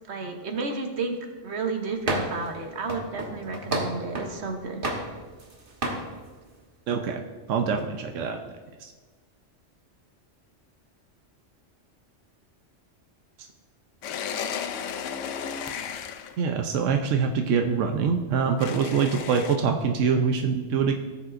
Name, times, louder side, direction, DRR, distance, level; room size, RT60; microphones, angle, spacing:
voice 1, 0.1-1.2 1.4-4.8, right 4 dB, 65° right, 5 dB, 1.2 m, -32 dB
sound 1, 2.1-2.5 2.9-4.4 4.8-5.5 5.8-6.1, right 2 dB, 50° right, 1.4 m, -30 dB
voice 2, 6.9-7.2 7.5-8.4 8.8-8.9 16.4-20.9, right 6 dB, 85° right, 4 dB, 1.0 m, -24 dB
sound 2, 14.0-16.4 18.6-19.6, left 7 dB, 90° left, 1.0 m, -33 dB
17.5 x 7.1 x 2.6 m, 1.3 s
omnidirectional pair, 1.2 m